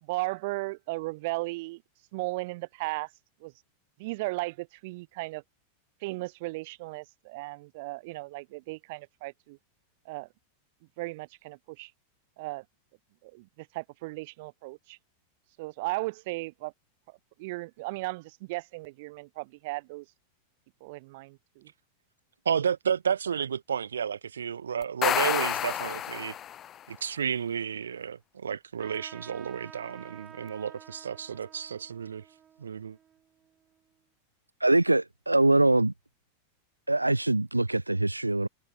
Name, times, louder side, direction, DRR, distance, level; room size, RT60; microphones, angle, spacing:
voice 1, 0.0-1.8 2.1-3.1 3.4-3.5 4.0-5.4 6.0-9.6 10.0-10.3 11.0-11.9 12.4-12.6 13.2-15.0 15.6-16.7 17.1-20.0 20.8-21.7, right 23 dB, 50° right, 1.7 m, -36 dB
voice 2, 22.4-26.3 26.9-32.2 32.6-33.0, right 7 dB, 70° right, 3.2 m, -31 dB
sound 1, 24.8-26.8, left 11 dB, 30° left, 0.6 m, -29 dB
Trumpet, 28.8-33.8, right 9 dB, 25° right, 5.6 m, -51 dB
voice 3, 34.6-35.9 36.9-38.5, right 2 dB, 85° right, 1.8 m, -23 dB
figure-of-eight pair, 90°, 0 cm